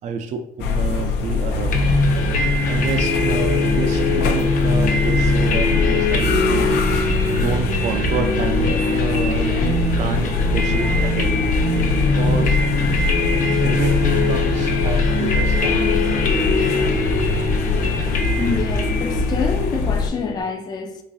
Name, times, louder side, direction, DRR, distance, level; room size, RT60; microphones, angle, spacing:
voice 1, 0.0-1.8 2.7-6.8 7.4-11.3 12.0-12.6 13.6-16.2, right 5 dB, 45° right, 0.4 m, -28 dB
sound 1, 0.6-20.1, left 3 dB, 85° left, 0.5 m, -23 dB
sound 2, 1.7-20.4, left 3 dB, 55° left, 0.8 m, -21 dB
sound 3, 1.8-15.5, right 2 dB, 65° right, 0.9 m, -39 dB
voice 2, 18.4-21.0, left 4 dB, 25° left, 0.4 m, -26 dB
3.9 x 3.0 x 2.6 m
cardioid pair, 110°, 17 cm